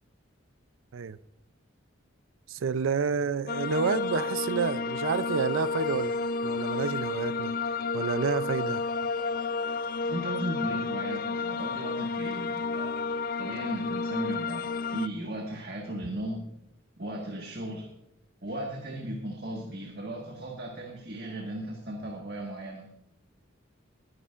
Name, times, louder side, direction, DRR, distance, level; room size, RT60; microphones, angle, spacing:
voice 1, 2.5-6.2 6.4-7.6 7.9-8.8, right 6 dB, 80° right, 0.4 m, -29 dB
sound 1, 3.5-15.1, left 4 dB, 45° left, 0.4 m, -31 dB
voice 2, 10.0-16.4 17.0-17.9 18.4-22.8, right 1 dB, 50° right, 1.5 m, -36 dB
20.5 x 10.0 x 2.5 m
head